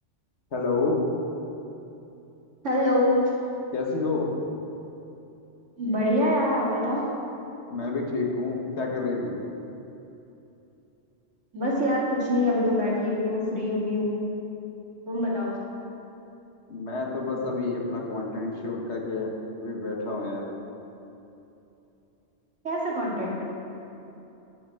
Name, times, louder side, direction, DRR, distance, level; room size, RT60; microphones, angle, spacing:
voice 1, 0.5-1.0 3.7-4.3 7.7-9.4 16.7-19.3 19.6-20.5, left 3 dB, 70° left, -1 dB, 1.7 m, -29 dB
voice 2, 2.6-3.3 5.8-7.0 11.5-14.2 15.1-15.6 22.6-23.4, left 1 dB, 80° right, -5 dB, 2.7 m, -25 dB
11.5 x 5.6 x 7.6 m, 2.9 s
omnidirectional pair, 1.2 m